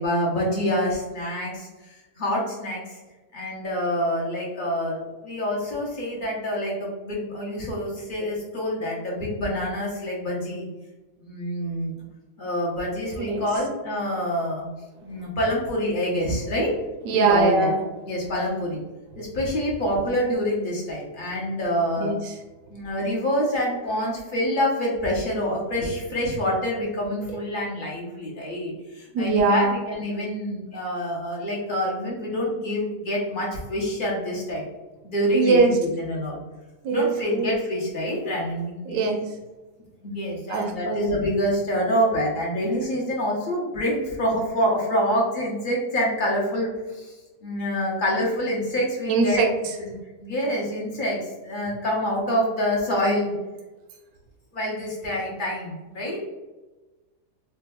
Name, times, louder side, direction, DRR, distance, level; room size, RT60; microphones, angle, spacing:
voice 1, 0.0-3.0 3.3-10.6 11.2-11.9 12.4-14.7 15.0-16.7 17.1-17.7 18.1-18.8 19.2-22.1 22.7-34.6 35.0-36.4 36.9-39.1 40.0-47.1 47.4-49.4 49.8-49.9 50.2-53.3 54.5-56.2, equal, 45° left, -3 dB, 0.7 m, -26 dB
voice 2, 17.0-17.8 22.0-22.4 29.1-29.8 35.3-35.7 36.8-37.5 38.9-39.2 40.5-41.1 49.1-49.5, right 4 dB, 70° right, 2 dB, 1.0 m, -21 dB
4.3 x 2.2 x 2.2 m, 1.1 s
omnidirectional pair, 1.7 m